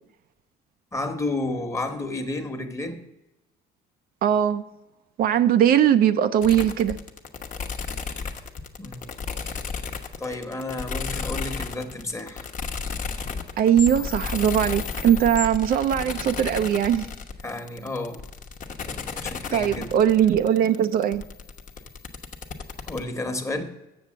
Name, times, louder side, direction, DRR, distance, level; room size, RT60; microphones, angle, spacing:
voice 1, 0.9-3.0 8.8-9.0 9.5-9.6 10.2-12.5 17.4-18.2 18.8-20.0 22.9-23.6, left 2 dB, 15° left, 1.2 m, -31 dB
voice 2, 4.2-4.6 5.2-7.0 13.6-17.1 19.5-21.2, right 10 dB, 60° right, 0.5 m, -20 dB
sound 1, 6.4-23.0, left 5 dB, 50° left, 1.0 m, -33 dB
7.1 x 6.9 x 7.3 m
cardioid pair, 110°, 17 cm